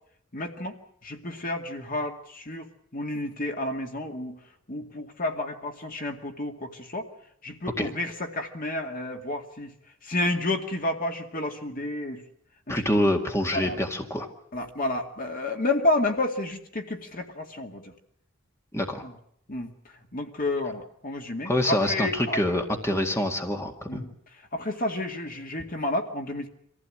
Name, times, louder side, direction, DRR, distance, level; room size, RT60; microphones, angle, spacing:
voice 1, 0.3-2.7 2.9-4.4 4.7-7.1 7.4-9.7 10.0-12.2 12.7-12.8 13.5-13.8 14.5-17.9 19.0-19.1 19.5-19.7 20.1-22.4 22.9-23.0 23.9-24.1 24.5-26.5, left 2 dB, 45° left, 4 dB, 2.2 m, -30 dB
voice 2, 12.7-14.3 18.7-19.0 21.5-24.0, left 1 dB, 15° left, 3 dB, 2.0 m, -26 dB
25.0 x 15.5 x 8.8 m, 0.70 s
head